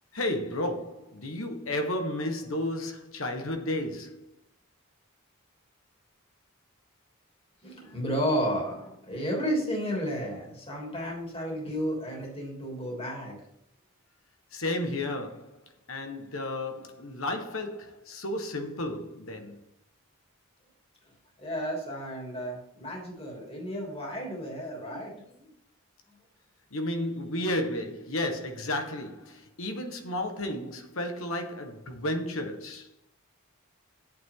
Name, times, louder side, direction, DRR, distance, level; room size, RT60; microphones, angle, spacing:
voice 1, 0.1-4.3 14.5-15.6 15.9-19.6 26.7-32.9, left 1 dB, 70° left, 1.6 m, -32 dB
voice 2, 7.6-13.4 21.4-25.5, equal, 25° left, 3.2 m, -32 dB
11.5 x 8.7 x 3.9 m
head